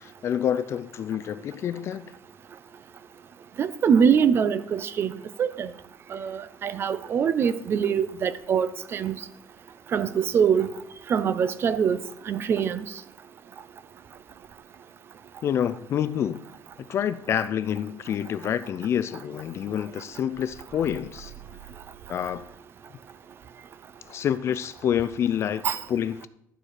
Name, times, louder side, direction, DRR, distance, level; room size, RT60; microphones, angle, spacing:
voice 1, 0.0-2.1 15.4-16.4 16.9-21.3 22.1-22.4 24.1-26.3, left 9 dB, 35° left, 0.4 m, -27 dB
voice 2, 3.6-5.7 6.1-9.2 9.9-10.7 11.1-12.0 12.3-12.8 25.6-25.8, right 7 dB, 30° right, 0.5 m, -23 dB
12.0 x 4.5 x 6.6 m
cardioid pair, 170°, 7 cm